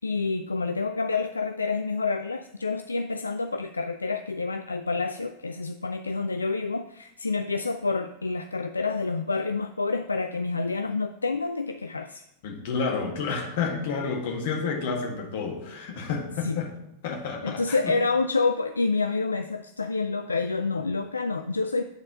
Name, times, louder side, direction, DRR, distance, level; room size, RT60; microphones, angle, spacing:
voice 1, 0.0-12.2 16.4-16.6 17.4-21.8, left 4 dB, 80° left, 8 dB, 0.3 m, -28 dB
voice 2, 12.4-16.7 17.0-17.9, left 5 dB, 55° left, 1 dB, 1.8 m, -30 dB
9.5 x 4.2 x 6.1 m, 0.83 s
figure-of-eight pair, 90°, 0 cm